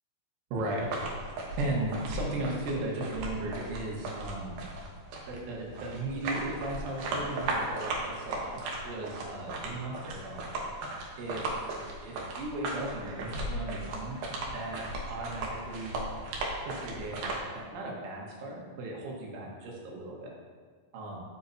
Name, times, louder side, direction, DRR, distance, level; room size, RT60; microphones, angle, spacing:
voice 1, 0.5-0.9 1.6-4.6 5.3-10.5 11.2-11.5 12.0-14.2 14.5-14.8 15.1-16.0 16.6-17.2 17.5-20.3 20.9-21.2, right 2 dB, 90° right, -2 dB, 4.0 m, -36 dB
sound 1, 0.8-17.4, right 2 dB, 70° right, 2.5 m, -37 dB
12.0 x 7.7 x 2.8 m, 1.5 s
omnidirectional pair, 5.3 m